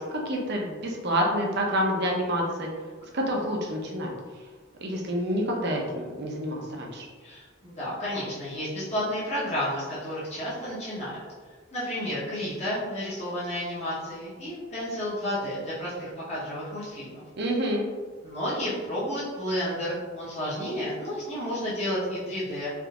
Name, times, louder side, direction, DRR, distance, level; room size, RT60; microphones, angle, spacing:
voice 1, 0.0-2.7 3.1-4.1 4.8-7.1 17.4-17.9, equal, 55° right, 0 dB, 0.6 m, -28 dB
voice 2, 7.2-11.2 11.7-17.2 18.2-22.7, equal, 35° left, -10 dB, 0.9 m, -31 dB
3.6 x 2.6 x 2.3 m, 1.4 s
head